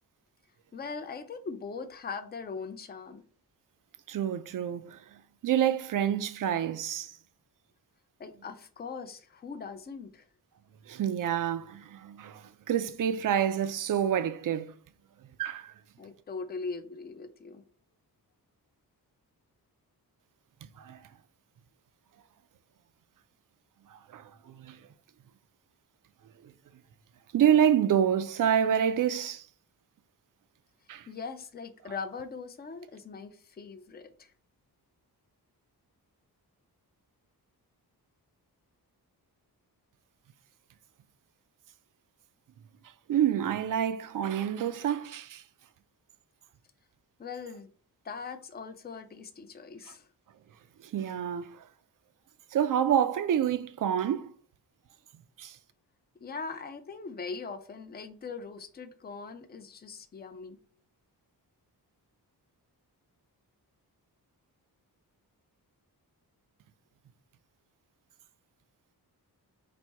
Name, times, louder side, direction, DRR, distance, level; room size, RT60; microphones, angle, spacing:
voice 1, 0.7-3.2 8.2-10.2 16.0-17.6 31.1-34.3 47.2-47.7 48.0-50.1 56.2-60.6, left 4 dB, 25° left, 0.5 m, -40 dB
voice 2, 4.1-7.1 10.9-14.7 15.4-15.7 20.8-21.0 23.9-24.8 26.4-26.5 27.3-29.5 30.9-31.1 43.1-45.4 50.8-51.7 52.5-54.3 55.4-55.6, right 9 dB, 55° right, 0.5 m, -28 dB
4.3 x 2.6 x 4.5 m
wide cardioid pair, 165°, 39 cm